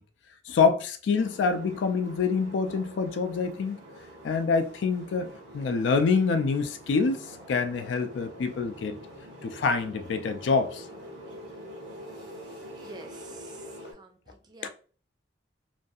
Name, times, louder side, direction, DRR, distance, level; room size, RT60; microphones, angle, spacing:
voice 1, 0.5-3.8 4.2-9.0 9.4-10.9 14.6-14.7, left 5 dB, 75° left, 0.3 m, -26 dB
sound 1, 1.2-13.9, equal, 80° right, 0.9 m, -45 dB
voice 2, 12.8-13.6 13.9-14.7, right 3 dB, 20° right, 0.3 m, -48 dB
2.5 x 2.3 x 2.6 m
head